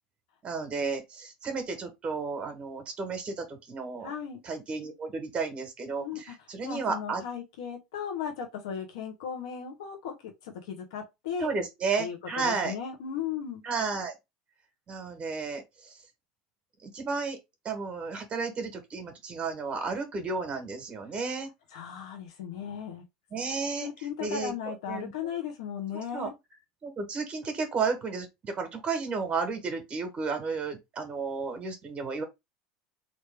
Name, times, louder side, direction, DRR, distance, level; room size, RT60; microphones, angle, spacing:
voice 1, 0.4-4.1 4.4-7.2 11.4-12.7 13.6-14.1 14.9-16.0 16.8-17.4 17.6-21.5 23.3-23.9 24.2-25.3 25.9-26.3 26.8-32.2, right 4 dB, 35° right, 1.1 m, -33 dB
voice 2, 4.0-4.4 6.0-11.5 12.0-13.6 21.7-23.0 23.8-26.3, left 8 dB, 80° left, 1.0 m, -36 dB
3.4 x 2.7 x 3.3 m
supercardioid pair, 100°, 3 cm